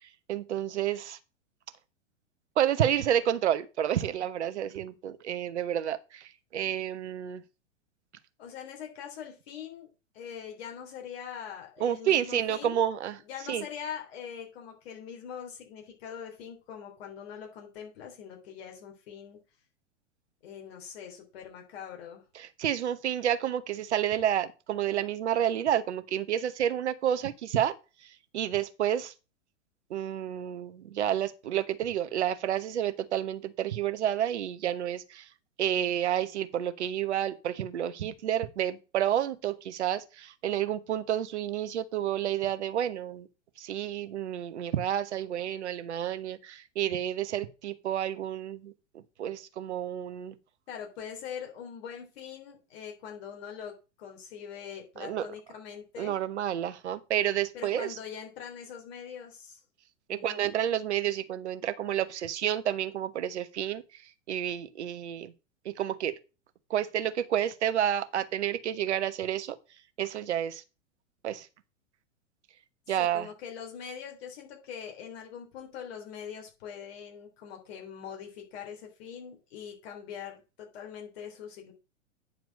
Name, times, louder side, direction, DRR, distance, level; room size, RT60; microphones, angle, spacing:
voice 1, 0.3-1.2 2.6-7.4 11.8-13.2 13.5-13.6 22.4-27.7 28.3-29.1 29.9-35.2 35.6-43.3 43.6-48.7 49.2-50.3 55.0-55.3 56.0-57.9 60.1-63.8 64.3-65.3 65.6-66.1 66.7-69.6 70.0-70.6 71.2-71.5 72.9-73.3, right 10 dB, 60° right, 1.1 m, -30 dB
voice 2, 8.4-9.9 10.1-12.8 13.2-19.4 20.4-22.2 50.7-56.2 57.5-59.6 60.1-60.5 73.0-81.7, left 8 dB, 55° left, 3.4 m, -43 dB
9.6 x 4.6 x 5.3 m
figure-of-eight pair, 100°, 38 cm